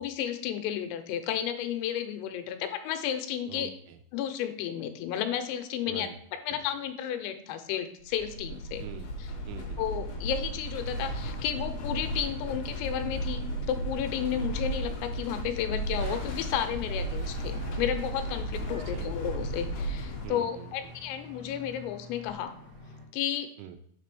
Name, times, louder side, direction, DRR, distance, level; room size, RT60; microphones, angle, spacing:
voice 1, 0.0-3.7 4.1-8.8 9.8-22.5 23.1-23.5, left 10 dB, 85° left, 8 dB, 3.3 m, -32 dB
voice 2, 3.5-4.0 5.9-6.2 6.5-6.6 8.8-9.1 9.5-9.8 18.9-19.3 20.2-20.9 23.6-23.8, right 8 dB, 85° right, 8 dB, 3.1 m, -44 dB
sound 1, 8.0-20.3, right 1 dB, 50° left, 3.2 m, -34 dB
sound 2, 15.9-23.0, left 1 dB, 55° right, 1.1 m, -47 dB
7.5 x 3.3 x 6.0 m, 0.67 s
omnidirectional pair, 6.0 m